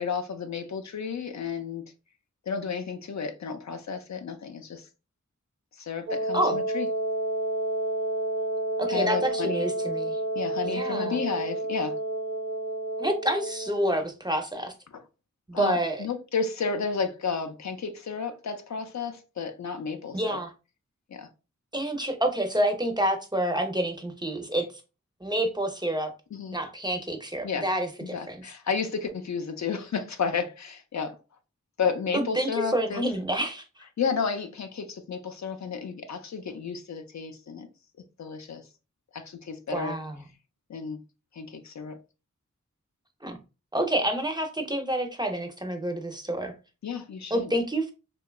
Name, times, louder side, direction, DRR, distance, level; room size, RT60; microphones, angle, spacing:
voice 1, 0.0-1.8 2.5-4.9 5.7-6.9 8.9-9.6 10.4-12.0 15.5-20.4 21.1-21.3 26.3-26.6 27.4-27.7 28.0-31.2 31.8-33.0 34.0-37.7 38.2-38.7 39.1-39.9 40.7-41.0 41.3-42.0 46.8-47.5, left 5 dB, 65° left, 0.4 m, -32 dB
Wind instrument woodwind instrument, 6.1-13.9, right 2 dB, 75° right, 0.9 m, -30 dB
voice 2, 8.8-10.2 10.6-11.2 13.0-14.7 15.5-16.0 20.1-20.5 21.7-24.7 25.2-26.1 26.5-28.4 32.1-33.6 39.7-40.1 43.2-43.4 43.7-46.5 47.3-47.9, right 1 dB, 15° right, 0.5 m, -28 dB
2.8 x 2.2 x 2.2 m
wide cardioid pair, 40°, 31 cm